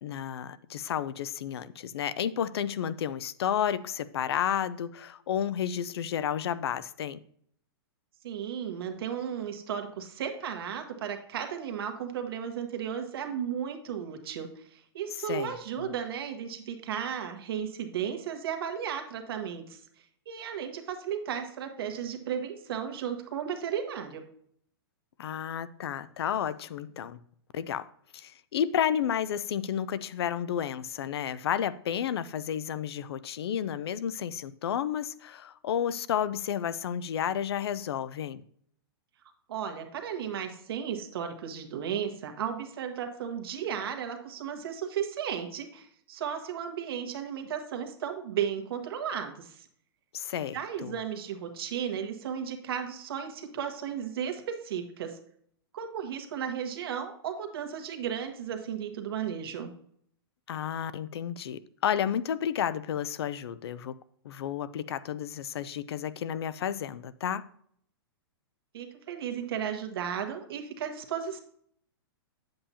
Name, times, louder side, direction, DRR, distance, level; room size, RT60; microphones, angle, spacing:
voice 1, 0.0-7.2 15.3-15.9 25.2-27.2 27.5-27.9 28.1-38.4 50.1-50.9 60.5-63.9 64.2-67.4, left 9 dB, 75° left, 0.5 m, -31 dB
voice 2, 8.2-19.8 20.3-24.2 39.5-49.6 50.5-55.2 55.7-59.7 68.7-71.4, right 8 dB, 65° right, 1.3 m, -34 dB
8.6 x 7.7 x 2.8 m
hypercardioid pair, 155°, 13 cm